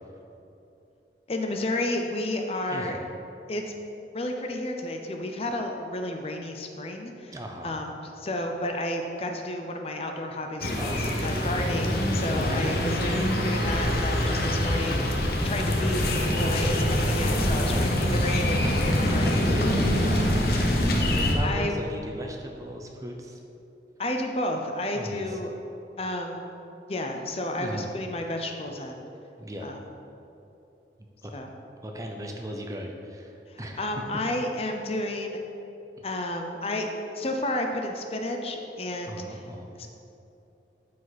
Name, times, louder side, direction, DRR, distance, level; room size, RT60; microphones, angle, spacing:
voice 1, 1.3-3.0 3.5-3.6 4.1-7.3 7.6-7.9 8.2-16.1 16.4-19.5 21.4-21.7 24.0-25.5 26.0-26.5 26.9-29.0 29.6-29.8 31.3-31.5 33.5-35.4 36.0-36.9 37.1-39.4 39.8-39.9, left 1 dB, 35° left, 3 dB, 0.6 m, -31 dB
voice 2, 2.7-3.1 7.3-7.8 10.7-11.4 12.4-12.8 14.1-14.5 17.6-18.1 19.0-20.3 21.0-23.4 24.9-25.4 27.6-27.9 29.4-29.7 31.2-31.3 31.8-33.8 36.0-36.1 39.1-39.9, equal, 20° right, 2 dB, 0.7 m, -37 dB
sound 1, 10.6-21.4, left 1 dB, 60° left, 1.0 m, -24 dB
12.5 x 5.0 x 4.1 m, 2.9 s
head